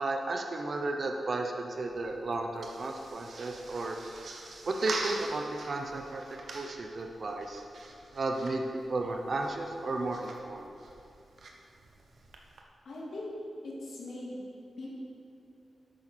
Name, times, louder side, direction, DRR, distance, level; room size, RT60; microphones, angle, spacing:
voice 1, 0.0-4.0 4.7-6.2 6.5-7.6 8.1-10.7, right 2 dB, 45° right, 3 dB, 0.7 m, -33 dB
sound 1, 1.7-12.6, right 2 dB, 60° right, 1.1 m, -44 dB
voice 2, 12.8-13.3 13.6-14.4 14.8-14.9, left 2 dB, 65° left, -5 dB, 2.4 m, -40 dB
11.0 x 8.6 x 4.4 m, 2.6 s
wide cardioid pair, 160°, 0 cm